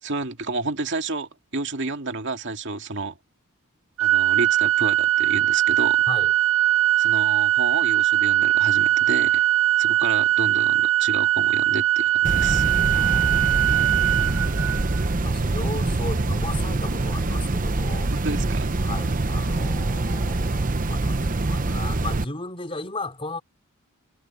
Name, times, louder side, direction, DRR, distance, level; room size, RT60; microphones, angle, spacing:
voice 1, 0.0-3.2 4.0-6.0 7.0-9.4 9.8-12.6 18.1-18.7, right 3 dB, 55° right, 2.4 m, -30 dB
Organ, 4.0-15.0, right 14 dB, 75° right, 1.3 m, -21 dB
sound 1, 12.2-22.2, right 2 dB, 40° right, 0.8 m, -24 dB
voice 2, 12.9-13.5 15.2-18.1 18.8-23.4, left 2 dB, 25° left, 4.9 m, -35 dB
head